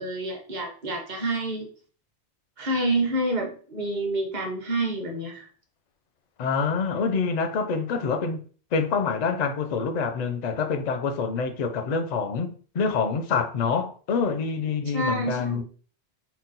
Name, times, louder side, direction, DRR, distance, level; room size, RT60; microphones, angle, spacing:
voice 1, 0.0-1.7 2.6-5.5 14.9-15.6, right 1 dB, 45° right, 1.0 m, -28 dB
voice 2, 6.4-8.4 8.7-15.6, left 5 dB, 55° left, 0.5 m, -26 dB
4.0 x 2.2 x 3.9 m
omnidirectional pair, 1.1 m